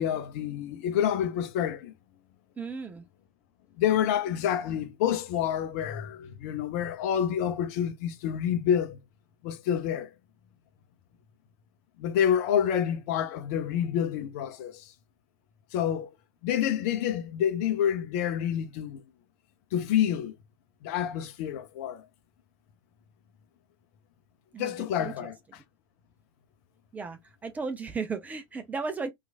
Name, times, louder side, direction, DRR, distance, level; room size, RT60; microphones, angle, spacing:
voice 1, 0.0-1.9 3.8-9.0 9.4-10.1 12.0-14.9 15.7-16.1 16.4-19.0 19.7-20.4 20.8-22.0 24.6-25.3, left 9 dB, 40° left, 0.6 m, -28 dB
voice 2, 2.6-3.0 24.5-25.3 26.9-29.1, right 4 dB, 10° right, 0.4 m, -35 dB
3.0 x 2.3 x 2.3 m
figure-of-eight pair, 95°, 12 cm